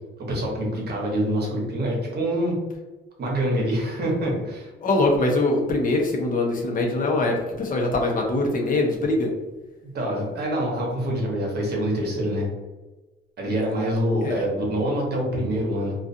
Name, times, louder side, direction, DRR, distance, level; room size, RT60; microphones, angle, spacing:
voice 1, 0.2-2.6 3.2-4.7 9.8-12.5 13.4-16.0, equal, 55° right, -1 dB, 1.0 m, -25 dB
voice 2, 4.8-9.3 14.2-14.4, left 2 dB, 45° left, 1 dB, 0.7 m, -23 dB
2.4 x 2.3 x 2.6 m, 1.2 s
cardioid pair, 90°, 20 cm